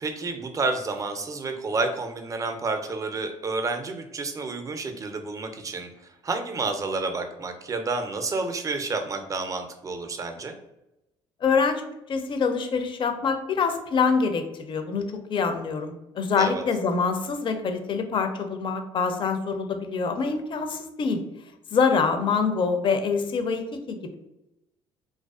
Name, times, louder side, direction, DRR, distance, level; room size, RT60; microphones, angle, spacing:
voice 1, 0.0-10.5 16.4-16.6, right 3 dB, 30° right, 6 dB, 0.4 m, -30 dB
voice 2, 11.4-11.8 12.1-21.2 21.7-24.1, left 5 dB, 45° left, 7 dB, 0.4 m, -25 dB
2.4 x 2.2 x 2.3 m, 0.89 s
supercardioid pair, 65°, 12 cm